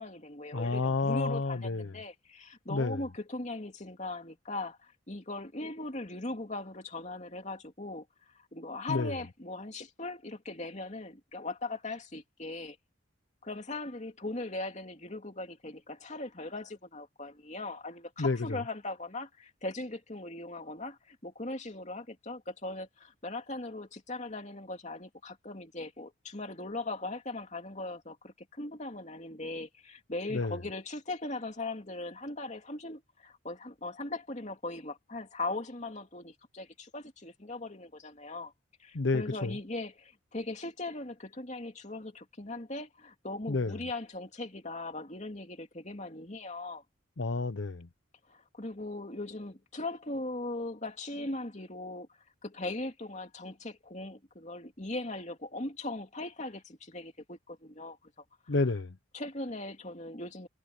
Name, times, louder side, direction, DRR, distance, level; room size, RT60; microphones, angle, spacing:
voice 1, 0.0-8.0 8.5-12.8 13.4-38.5 38.8-46.8 48.3-52.1 52.4-58.0 59.1-60.5, left 2 dB, 35° left, 2.7 m, -39 dB
voice 2, 0.5-1.9 2.7-3.0 8.9-9.1 18.2-18.6 30.3-30.6 38.9-39.6 43.5-43.8 47.2-47.9 58.5-59.0, left 3 dB, 70° left, 0.8 m, -30 dB
head